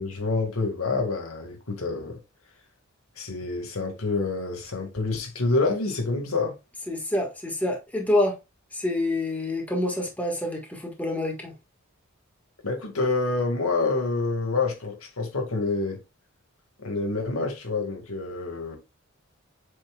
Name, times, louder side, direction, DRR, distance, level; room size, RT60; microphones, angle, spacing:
voice 1, 0.0-2.2 3.2-6.6 12.6-16.0 16.8-18.8, left 3 dB, 90° left, 2.0 m, -27 dB
voice 2, 6.9-8.4 8.7-11.5, left 1 dB, 5° left, 1.6 m, -27 dB
7.5 x 5.5 x 2.3 m
head